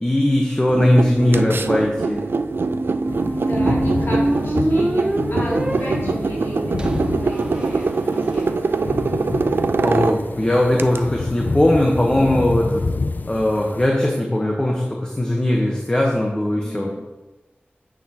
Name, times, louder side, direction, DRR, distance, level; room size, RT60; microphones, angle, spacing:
voice 1, 0.0-2.2 9.8-12.8 13.3-16.9, left 1 dB, 20° left, -1 dB, 1.1 m, -19 dB
sound 1, 0.7-11.0, right 4 dB, 70° right, 0.4 m, -23 dB
sound 2, 2.5-8.4, right 1 dB, 25° right, 0.7 m, -25 dB
sound 3, 3.1-13.9, left 3 dB, 50° left, 0.3 m, -28 dB
voice 2, 3.4-8.4 10.5-11.1 16.5-17.0, equal, 70° left, -6 dB, 2.8 m, -33 dB
9.1 x 7.5 x 2.9 m, 1.1 s
wide cardioid pair, 75°, 4 cm